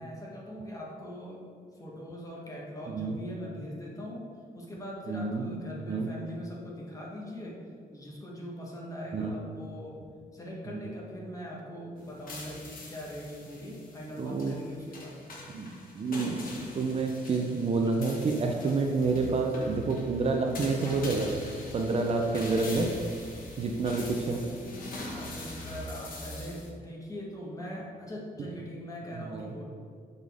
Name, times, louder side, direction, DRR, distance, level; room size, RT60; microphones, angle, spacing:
voice 1, 0.0-1.5 1.7-4.3 4.5-7.6 7.9-10.0 10.3-15.2 18.5-18.8 25.1-29.6, equal, 20° left, -3 dB, 1.3 m, -41 dB
voice 2, 5.1-5.4 5.8-6.1 9.1-9.3 10.7-10.9 14.2-14.6 15.5-15.7 16.0-22.9 23.6-24.4 29.3-29.5, right 3 dB, 40° right, 2 dB, 0.5 m, -29 dB
sound 1, 12.0-26.7, left 2 dB, 65° left, 1.2 m, -43 dB
6.5 x 4.1 x 3.6 m, 2.2 s
cardioid pair, 110°, 16 cm